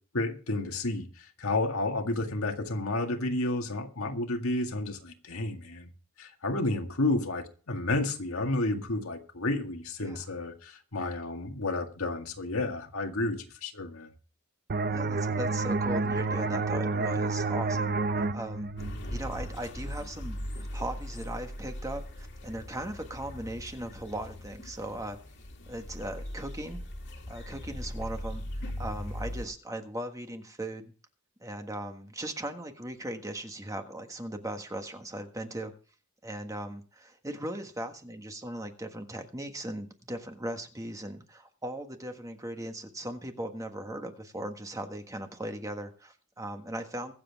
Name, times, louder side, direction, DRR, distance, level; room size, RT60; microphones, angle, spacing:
voice 1, 0.1-5.9 6.2-14.1, left 2 dB, 75° left, 1.9 m, -31 dB
sound 1, 14.7-20.1, right 3 dB, 45° right, 0.6 m, -30 dB
voice 2, 14.9-18.7 19.1-25.2 25.7-26.8 27.3-30.8 31.4-35.7 36.2-47.1, right 1 dB, 15° right, 1.4 m, -38 dB
sound 2, 18.8-29.5, equal, 55° left, 2.3 m, -39 dB
23.0 x 7.7 x 3.5 m
head